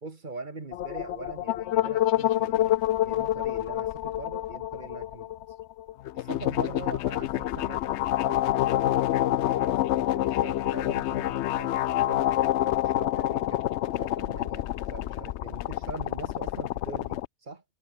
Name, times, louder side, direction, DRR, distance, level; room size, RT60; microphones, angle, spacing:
voice 1, 0.0-5.3 6.1-8.0 8.2-13.6 14.0-17.6, right 3 dB, 35° right, 1.9 m, -43 dB
sound 1, 0.7-17.3, left 13 dB, 65° left, 0.7 m, -27 dB
omnidirectional pair, 1.5 m